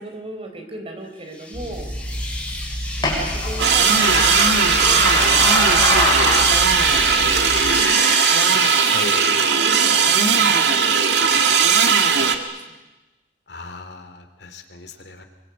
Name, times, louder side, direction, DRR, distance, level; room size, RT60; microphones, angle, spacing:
voice 1, 0.0-1.9 3.0-8.0 8.3-11.8 12.1-12.4 12.7-12.8, right 1 dB, 35° right, 5 dB, 4.2 m, -37 dB
sound 1, 1.3-9.2, left 2 dB, 5° left, 7.8 m, -29 dB
sound 2, 1.5-7.8, left 2 dB, 25° left, 7.3 m, -24 dB
sound 3, 3.6-12.4, right 6 dB, 75° right, 2.0 m, -17 dB
voice 2, 13.5-15.2, left 3 dB, 65° left, 7 dB, 2.9 m, -38 dB
26.0 x 24.0 x 8.3 m, 1.1 s
head